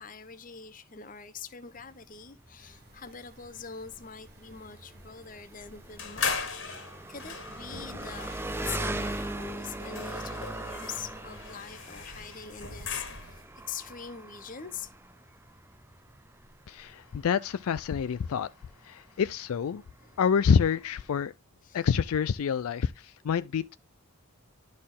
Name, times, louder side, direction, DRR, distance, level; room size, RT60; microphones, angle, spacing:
voice 1, 0.0-6.4 6.7-8.3 8.7-14.9 20.0-20.2 21.6-21.8, left 6 dB, 35° left, 0.8 m, -43 dB
Engine, 1.7-21.3, right 2 dB, 10° right, 0.5 m, -41 dB
sound 1, 2.6-13.4, right 1 dB, 45° right, 1.7 m, -55 dB
sound 2, 6.0-13.5, left 5 dB, 55° left, 1.8 m, -38 dB
voice 2, 16.7-18.5 18.8-19.8 20.2-21.3 21.7-23.7, left 7 dB, 75° left, 0.4 m, -27 dB
11.0 x 4.3 x 3.7 m
head